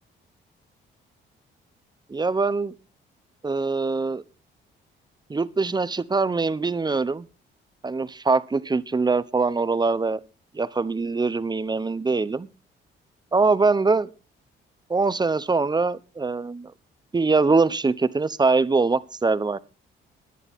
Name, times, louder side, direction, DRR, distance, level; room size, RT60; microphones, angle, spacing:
voice 1, 2.1-2.7 3.4-4.2 5.3-7.2 7.8-10.2 10.5-12.5 13.3-14.1 14.9-16.7 17.1-19.6, right 4 dB, 20° right, 16 dB, 1.0 m, -23 dB
18.0 x 11.0 x 3.7 m, 0.32 s
cardioid pair, 90°, 20 cm